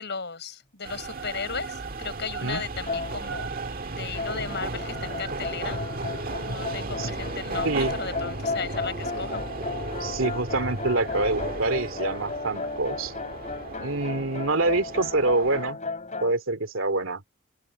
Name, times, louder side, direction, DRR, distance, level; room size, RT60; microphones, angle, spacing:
voice 1, 0.0-3.5 4.0-5.8 6.5-9.4, left 5 dB, 55° left, 7.5 m, -35 dB
sound 1, 0.8-15.7, right 3 dB, 45° right, 1.7 m, -35 dB
sound 2, 2.9-3.7 4.1-16.3, left 3 dB, 35° left, 3.8 m, -35 dB
voice 2, 7.6-7.9 10.0-13.1 13.8-15.8 16.2-17.2, right 2 dB, 75° right, 2.6 m, -26 dB
head